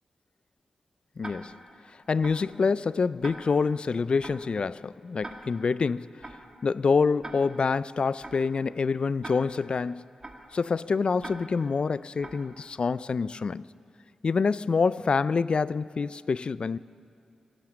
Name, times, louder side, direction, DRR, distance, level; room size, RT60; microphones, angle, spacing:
voice 1, 1.2-1.6 2.1-6.1 6.6-10.1 10.5-13.7 14.2-16.8, left 5 dB, 55° left, 0.3 m, -26 dB
Tick-tock, 1.2-1.7 2.2-2.6 3.2-3.7 4.2-4.6 5.2-5.7 6.2-6.6 7.2-7.7 8.2-8.6 9.2-9.7 10.2-10.6 11.2-11.7 12.2-12.6, right 2 dB, 30° right, 2.1 m, -43 dB
17.0 x 11.5 x 7.4 m
cardioid pair, 50°, 2 cm